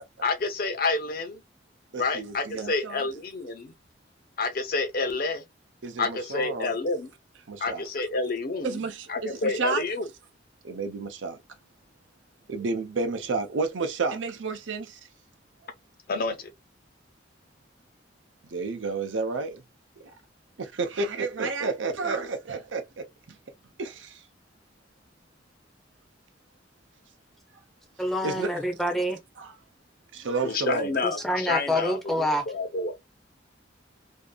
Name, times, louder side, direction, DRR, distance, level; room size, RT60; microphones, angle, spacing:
voice 1, 0.2-1.4 2.0-3.7 4.4-5.4 6.0-7.1 7.6-8.8 9.1-10.1 16.1-16.5 30.4-32.9, left 3 dB, 50° left, 0.6 m, -29 dB
voice 2, 1.9-3.0 5.8-6.7 7.5-7.8 8.6-9.8 10.6-11.4 12.5-15.0 18.5-19.6 20.6-23.1 23.8-24.2 28.2-28.5 29.4-29.5 30.1-30.9, right 4 dB, 90° right, 0.6 m, -31 dB
voice 3, 28.0-29.2 31.0-32.4, equal, ahead, 0.5 m, -27 dB
2.6 x 2.4 x 2.2 m
head